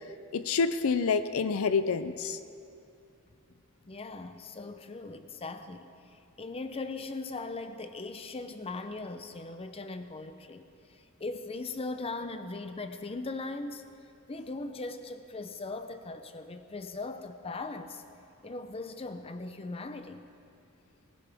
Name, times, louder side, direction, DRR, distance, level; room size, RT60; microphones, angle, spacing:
voice 1, 0.3-2.4, left 5 dB, 70° left, 12 dB, 0.5 m, -27 dB
voice 2, 3.9-13.8 14.3-18.0 18.4-20.3, left 3 dB, 25° left, 9 dB, 0.6 m, -39 dB
19.0 x 16.5 x 3.5 m, 2.6 s
head